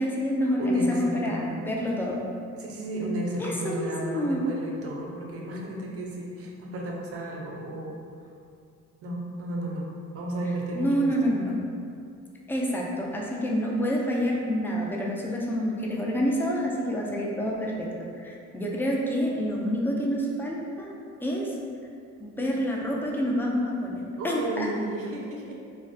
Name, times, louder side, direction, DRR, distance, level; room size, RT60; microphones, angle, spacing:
voice 1, 0.0-2.2 3.4-4.5 10.7-11.6 12.5-17.9 18.2-20.9 21.2-21.5 22.2-24.0 24.2-24.7, equal, 5° left, -3 dB, 0.3 m, -27 dB
voice 2, 0.6-2.1 2.6-8.3 9.0-9.9 10.1-11.1 24.2-25.6, right 1 dB, 50° right, -1 dB, 0.5 m, -33 dB
2.3 x 2.1 x 2.6 m, 2.4 s
cardioid pair, 90°, 30 cm